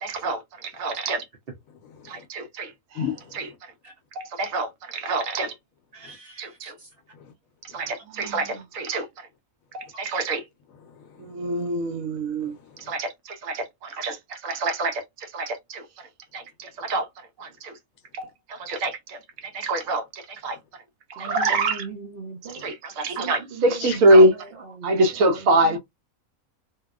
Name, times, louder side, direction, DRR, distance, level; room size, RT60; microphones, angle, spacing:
voice 1, 0.0-1.2 2.1-2.7 4.2-5.5 6.4-6.7 7.7-9.1 9.7-10.4 11.2-12.5 12.9-13.1 13.4-15.8 16.3-17.1 17.4-17.7 18.2-18.3 18.6-19.2 19.5-20.6 21.1-21.8 22.6-24.3 24.8-25.8, right 1 dB, 70° right, 1.0 m, -24 dB
voice 2, 2.9-3.6 6.0-6.2 7.1-7.3 7.7-7.9 10.8-11.6 12.4-13.0 22.5-22.6 23.8-24.0, left 8 dB, 75° left, 1.0 m, -37 dB
voice 3, 5.9-6.9 21.2-22.7 23.0-25.8, right 5 dB, 55° right, 0.7 m, -40 dB
2.8 x 2.1 x 2.3 m
omnidirectional pair, 1.5 m